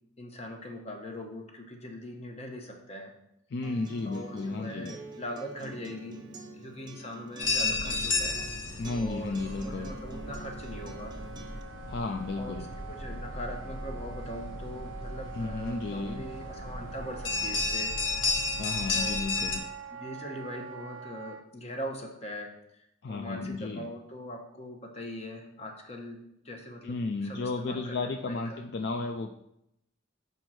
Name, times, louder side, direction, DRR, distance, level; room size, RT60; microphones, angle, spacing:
voice 1, 0.2-3.1 4.0-6.2 6.5-9.4 9.6-11.2 12.3-18.0 18.9-19.2 19.9-28.6, equal, 30° left, 3 dB, 1.0 m, -41 dB
voice 2, 3.5-4.9 8.8-9.9 11.9-12.7 15.3-16.2 18.6-19.6 23.0-23.9 26.8-29.3, left 3 dB, 55° left, 5 dB, 0.4 m, -33 dB
Acoustic guitar, 3.6-11.6, right 2 dB, 20° right, 0.5 m, -46 dB
sound 1, 7.4-19.6, left 3 dB, 75° left, 1.1 m, -33 dB
Wind instrument woodwind instrument, 9.4-21.4, right 6 dB, 80° right, 0.5 m, -46 dB
5.4 x 4.5 x 6.1 m, 0.80 s
head